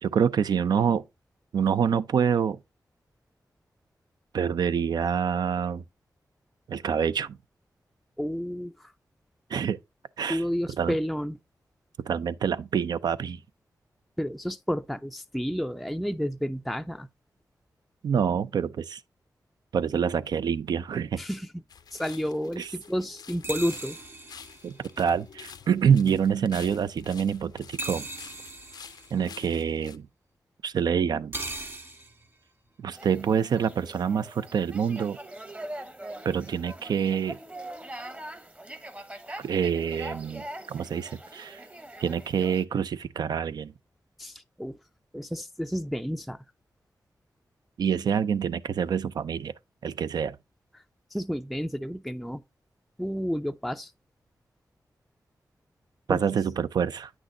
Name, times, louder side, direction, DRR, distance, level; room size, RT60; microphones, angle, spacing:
voice 1, 0.0-1.0 1.5-2.6 4.3-5.8 6.7-7.4 9.5-9.8 10.2-10.4 10.8-10.9 12.0-13.4 18.0-19.0 19.7-21.2 22.6-22.7 24.6-28.1 29.1-30.1 30.6-31.4 32.8-35.2 36.2-37.4 39.4-41.6 42.0-43.7 47.8-49.5 49.8-50.4 56.1-57.1, right 7 dB, 85° right, 0.4 m, -26 dB
voice 2, 8.2-8.9 10.3-11.4 14.2-17.1 21.2-21.5 21.9-24.0 44.2-44.8 45.1-46.4 51.1-52.4 53.0-53.9 56.1-56.2, equal, ahead, 0.3 m, -31 dB
sound 1, 21.7-30.0, left 7 dB, 80° left, 0.5 m, -49 dB
sound 2, 23.4-25.2 27.8-29.2 31.3-32.3, right 2 dB, 40° right, 1.6 m, -38 dB
sound 3, 32.9-42.6, right 1 dB, 20° right, 0.8 m, -42 dB
8.8 x 6.2 x 2.6 m
wide cardioid pair, 80°, 7 cm